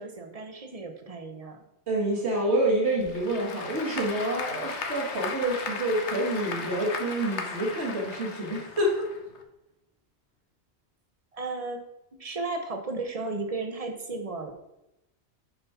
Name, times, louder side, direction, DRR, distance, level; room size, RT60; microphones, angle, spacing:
voice 1, 0.0-1.6 11.3-11.8 12.2-14.5, right 3 dB, 35° right, 5 dB, 1.1 m, -34 dB
voice 2, 1.9-9.1, right 1 dB, 70° right, -2 dB, 2.4 m, -27 dB
Applause / Crowd, 2.8-9.4, left 4 dB, 80° left, 1.3 m, -36 dB
8.1 x 5.3 x 5.7 m, 0.91 s
omnidirectional pair, 1.2 m